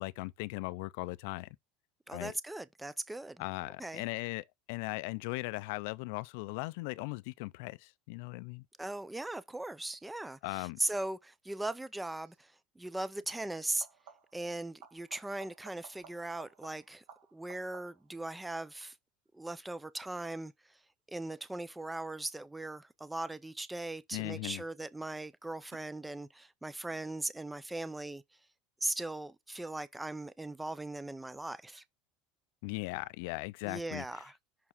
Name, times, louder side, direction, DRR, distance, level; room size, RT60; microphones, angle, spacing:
voice 1, 0.0-1.5 2.1-2.3 3.4-8.6 10.4-10.8 24.1-24.6 32.6-34.0, left 23 dB, 70° left, 0.4 m, -38 dB
voice 2, 2.1-3.4 3.8-4.0 8.8-13.9 14.3-17.0 17.3-19.0 19.3-20.5 21.1-28.2 28.8-31.8 33.7-34.3, right 2 dB, 5° right, 0.5 m, -39 dB
sound 1, 12.2-12.5 13.7-14.5 14.8-18.2 23.6-24.2 25.7-25.8, right 7 dB, 75° right, 2.4 m, -57 dB
6.0 x 4.6 x 3.5 m
supercardioid pair, 145°, 0 cm